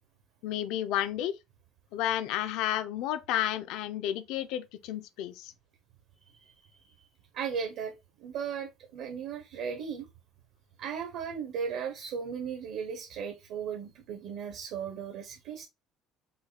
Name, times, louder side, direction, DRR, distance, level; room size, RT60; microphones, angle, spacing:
voice 1, 0.4-1.3 1.9-5.5, left 12 dB, 75° left, 0.6 m, -31 dB
voice 2, 6.3-7.1 7.3-7.9 8.2-10.1 10.8-15.6, right 7 dB, 65° right, 0.9 m, -36 dB
5.4 x 2.3 x 4.0 m
cardioid pair, 165°, 0 cm